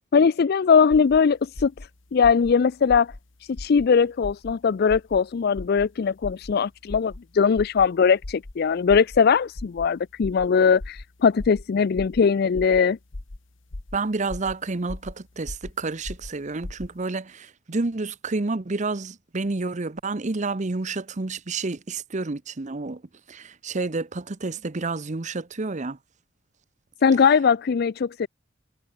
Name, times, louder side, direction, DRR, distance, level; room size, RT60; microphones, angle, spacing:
voice 1, 0.1-1.7 2.1-3.1 3.4-13.0 27.0-28.3, left 6 dB, 55° left, 0.4 m, -20 dB
sound 1, 0.9-1.2 1.5-1.9 2.2-2.5 2.9-3.2 3.6-3.9 4.2-4.5 4.9-5.2 5.6-5.9 6.2-6.5 6.9-7.2 7.5-7.9 8.2-8.5 8.9-9.2 9.6-9.9 10.2-10.5 10.8-11.0 11.4-11.6 12.0-12.2 12.5-12.8 13.1-13.4 13.7-14.0 14.3-14.5 14.9-15.1 15.4-15.7 16.0-16.3 16.6-16.9, left 2 dB, 75° left, 1.4 m, -37 dB
voice 2, 13.9-23.0 23.3-26.0, right 3 dB, 40° right, 0.8 m, -29 dB
head